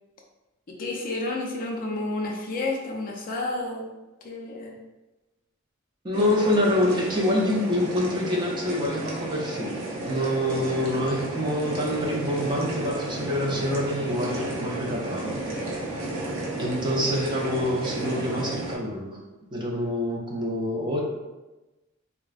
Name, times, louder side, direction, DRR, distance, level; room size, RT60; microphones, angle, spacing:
voice 1, 0.7-3.9 4.2-4.8, left 2 dB, 40° left, -1 dB, 0.4 m, -30 dB
voice 2, 6.0-15.4 16.6-19.2 19.5-21.0, left 1 dB, 20° right, -2 dB, 0.5 m, -26 dB
sound 1, 6.1-18.8, right 1 dB, 90° right, 0.6 m, -33 dB
3.4 x 2.1 x 2.4 m, 1.1 s
head